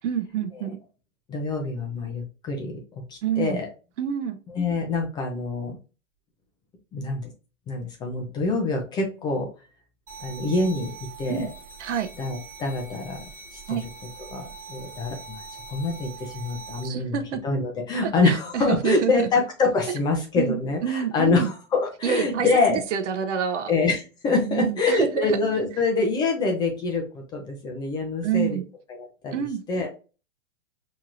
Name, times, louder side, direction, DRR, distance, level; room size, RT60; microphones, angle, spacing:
voice 1, 0.0-0.8 3.2-3.6 4.0-4.4 11.3-11.5 11.8-12.1 13.7-13.9 16.8-17.4 18.0-19.3 20.4-21.5 22.0-23.7 24.4-25.4 28.2-28.6 29.3-29.6, right 8 dB, 60° right, 0.7 m, -27 dB
voice 2, 1.3-3.7 4.5-5.8 6.9-7.3 7.7-9.5 10.2-10.9 11.2-11.5 12.2-13.8 14.3-15.4 15.7-22.8 23.7-28.6 28.9-29.3 29.7-29.9, left 3 dB, 10° left, 0.4 m, -25 dB
sound 1, 10.1-16.9, right 5 dB, 20° right, 1.3 m, -42 dB
4.5 x 2.9 x 2.5 m
hypercardioid pair, 125°, 40 cm